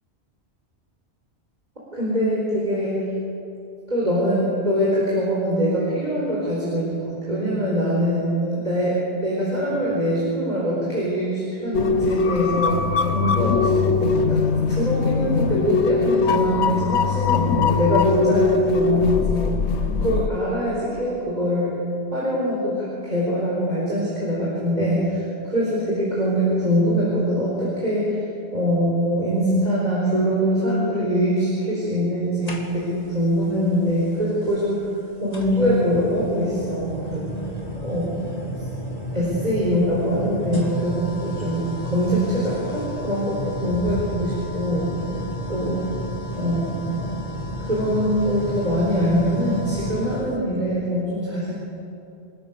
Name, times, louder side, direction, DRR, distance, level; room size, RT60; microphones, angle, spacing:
voice 1, 1.9-3.0 3.9-19.5 20.0-21.8 22.1-25.2 25.5-28.2 28.5-34.8 35.2-37.3 37.8-38.1 39.1-44.9 45.5-45.8 46.3-46.8 47.7-51.5, equal, 40° right, -6 dB, 4.6 m, -23 dB
sound 1, 11.7-20.3, left 5 dB, 85° left, 1.1 m, -21 dB
sound 2, 32.5-33.1 34.4-34.5 35.3-50.3, equal, 35° left, 2.4 m, -32 dB
27.0 x 14.5 x 6.8 m, 2.6 s
omnidirectional pair, 1.1 m